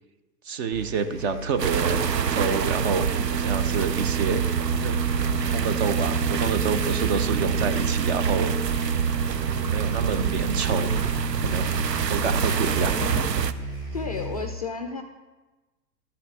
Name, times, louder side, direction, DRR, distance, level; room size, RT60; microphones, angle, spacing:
voice 1, 0.4-4.5 4.8-5.0 5.3-8.5 9.6-11.0 11.4-13.0, right 5 dB, 40° right, 11 dB, 0.8 m, -28 dB
sound 1, 0.7-14.5, equal, 75° right, 3.8 m, -36 dB
sound 2, 1.6-13.5, right 7 dB, 90° right, 0.6 m, -25 dB
sound 3, 8.5-13.5, equal, 10° right, 0.7 m, -39 dB
voice 2, 13.9-15.0, left 4 dB, 25° left, 6 dB, 0.3 m, -32 dB
13.0 x 7.7 x 3.6 m, 1.2 s
figure-of-eight pair, 110°, 48 cm